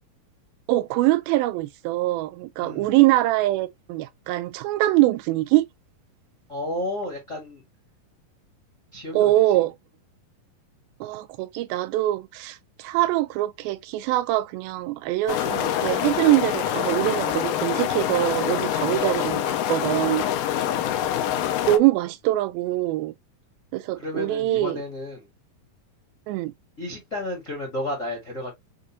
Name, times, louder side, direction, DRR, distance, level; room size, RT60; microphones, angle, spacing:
voice 1, 0.7-5.7 9.1-9.7 11.0-20.3 21.7-23.1 23.7-24.8 26.3-26.5, right 16 dB, 85° right, 2.4 m, -23 dB
voice 2, 2.6-2.9 6.5-7.6 8.9-9.6 18.8-19.0 20.5-20.8 24.0-25.3 26.8-28.5, left 1 dB, 45° left, 1.0 m, -32 dB
sound 1, 15.3-21.8, left 11 dB, 80° left, 1.9 m, -25 dB
6.4 x 2.5 x 2.6 m
omnidirectional pair, 4.3 m